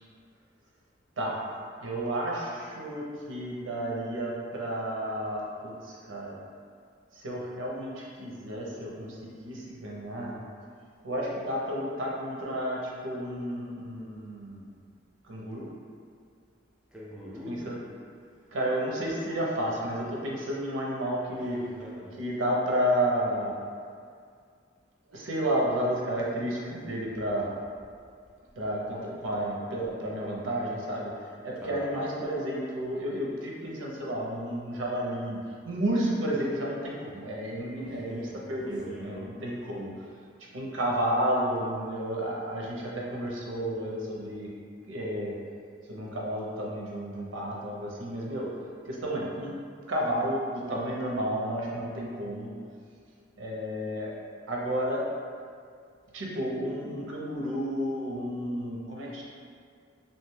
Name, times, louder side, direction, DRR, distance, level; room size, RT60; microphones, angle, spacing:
voice 1, 1.2-1.5 1.8-6.4 7.1-10.4 11.0-14.7 15.2-15.7 17.4-17.8 18.5-21.6 22.2-23.5 25.1-27.5 28.6-35.4 35.7-39.9 40.5-44.5 44.9-45.3 45.9-48.5 48.8-49.5 49.9-52.5 53.4-54.2 54.5-55.1 56.1-59.2, equal, 80° right, -3 dB, 0.6 m, -31 dB
voice 2, 16.9-17.7 21.3-22.1 31.6-31.9 37.8-39.3, equal, 5° right, -6 dB, 0.3 m, -44 dB
2.7 x 2.2 x 3.1 m, 2.2 s
head